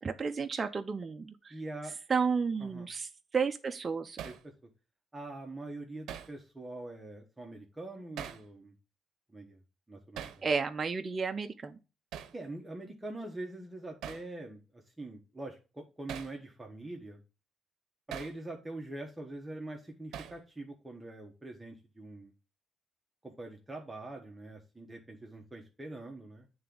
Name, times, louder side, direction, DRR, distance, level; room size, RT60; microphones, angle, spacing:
voice 1, 0.0-1.5 2.1-3.1 3.3-4.2 10.4-11.8, right 5 dB, 30° right, 0.4 m, -32 dB
voice 2, 1.5-2.0 2.6-2.9 4.2-4.5 5.1-8.7 9.3-9.6 9.9-10.5 12.3-17.2 18.1-22.3 23.2-26.5, right 2 dB, 10° right, 0.9 m, -44 dB
Hammer, 4.2-4.4 6.1-6.4 8.2-8.5 10.2-10.4 12.1-12.4 14.0-14.3 16.1-16.4 18.1-18.4 20.1-20.4, right 9 dB, 85° right, 0.6 m, -42 dB
8.7 x 3.4 x 3.7 m
cardioid pair, 130°, 0 cm